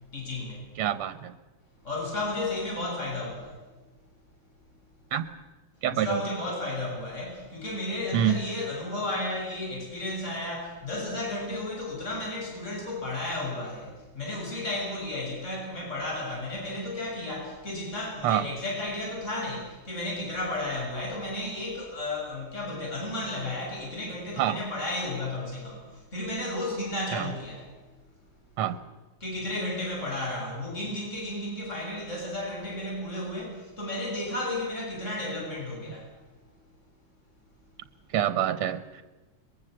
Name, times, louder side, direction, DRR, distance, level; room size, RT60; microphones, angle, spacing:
voice 1, 0.1-0.7 1.8-3.6 5.9-27.7 29.2-36.1, left 1 dB, 30° left, -3 dB, 7.1 m, -33 dB
voice 2, 0.8-1.3 5.1-5.3 5.8-6.2 8.1-8.4 18.2-18.5 24.4-24.6 27.1-27.3 28.6-28.8 38.1-39.0, right 10 dB, 80° right, 13 dB, 1.8 m, -26 dB
22.5 x 21.5 x 7.8 m, 1.2 s
omnidirectional pair, 2.4 m